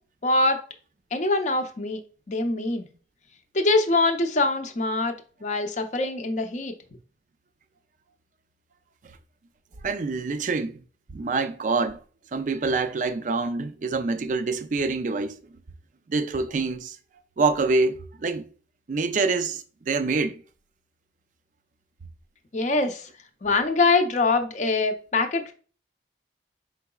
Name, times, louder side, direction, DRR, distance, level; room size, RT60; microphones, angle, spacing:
voice 1, 0.2-0.6 1.1-2.0 2.3-2.9 3.5-5.1 5.4-6.7 22.5-23.1 23.4-25.5, left 3 dB, 40° left, 0.5 m, -23 dB
voice 2, 9.8-10.8 11.1-12.0 12.3-15.4 16.1-17.0 17.4-18.5 18.9-20.4, right 3 dB, 45° right, 0.4 m, -26 dB
4.6 x 3.8 x 2.3 m
head